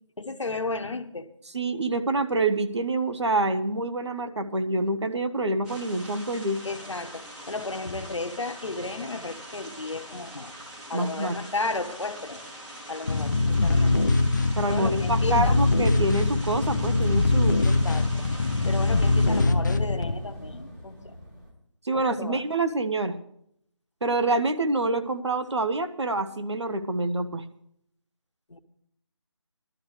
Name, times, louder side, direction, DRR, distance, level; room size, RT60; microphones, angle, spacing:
voice 1, 0.2-1.3 6.6-10.5 10.9-12.4 12.9-14.1 14.6-15.6 17.6-18.3 18.6-21.1 21.9-22.4 28.5-28.6, left 3 dB, 75° left, 8 dB, 1.3 m, -34 dB
voice 2, 1.5-6.6 10.9-11.4 14.6-17.6 21.8-23.2 24.0-27.4, right 2 dB, 65° right, 8 dB, 1.2 m, -26 dB
sound 1, 5.6-19.4, equal, 5° right, 0.8 m, -43 dB
sound 2, 13.1-20.1, left 3 dB, 40° left, 0.8 m, -23 dB
sound 3, 15.2-21.5, equal, 45° right, 4.7 m, -42 dB
18.5 x 12.5 x 3.2 m, 0.73 s
figure-of-eight pair, 165°, 15 cm